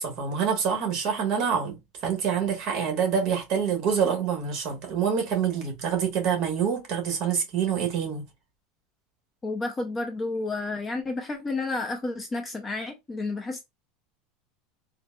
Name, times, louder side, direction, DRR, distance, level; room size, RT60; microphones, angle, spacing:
voice 1, 0.0-8.2, right 7 dB, 40° right, 1.3 m, -26 dB
voice 2, 9.4-13.6, left 3 dB, 15° left, 0.5 m, -31 dB
3.7 x 2.5 x 2.3 m
supercardioid pair, 165°, 0 cm